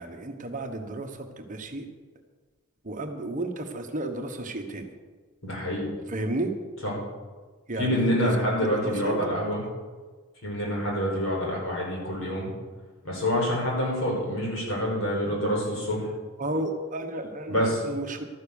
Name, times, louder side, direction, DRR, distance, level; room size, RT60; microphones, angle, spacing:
voice 1, 0.0-1.9 2.8-4.9 6.1-6.5 7.7-8.1 8.6-9.4 16.4-18.2, right 2 dB, 35° right, 5 dB, 1.1 m, -32 dB
voice 2, 5.4-5.9 6.8-6.9 7.8-9.6 10.4-12.5 13.0-16.1 17.5-17.8, equal, 60° left, -3 dB, 5.7 m, -27 dB
12.5 x 9.8 x 7.0 m, 1.3 s
head